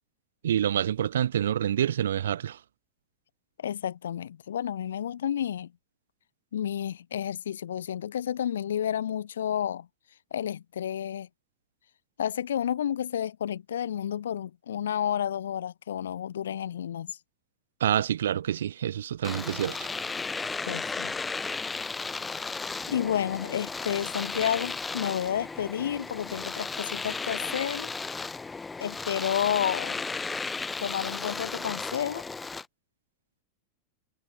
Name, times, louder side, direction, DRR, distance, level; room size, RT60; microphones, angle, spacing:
voice 1, 0.4-2.6 17.8-19.9, right 10 dB, 65° right, 0.3 m, -27 dB
voice 2, 3.6-5.7 6.5-9.9 10.3-11.3 12.2-17.2 20.7-21.1 22.9-27.9 28.8-30.0 30.8-32.2, left 9 dB, 65° left, 0.7 m, -31 dB
Domestic sounds home sounds, 19.2-32.7, left 4 dB, 10° left, 0.9 m, -35 dB
figure-of-eight pair, 90°, 0 cm